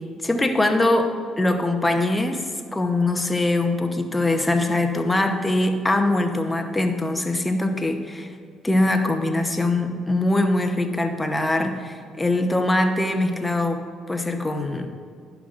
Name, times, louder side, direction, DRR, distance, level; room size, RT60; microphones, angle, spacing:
voice 1, 0.2-2.5 2.7-8.3 8.6-13.8 14.1-14.9, left 2 dB, 15° left, 5 dB, 0.8 m, -22 dB
11.0 x 5.9 x 2.5 m, 2.1 s
hypercardioid pair, 60°, 0 cm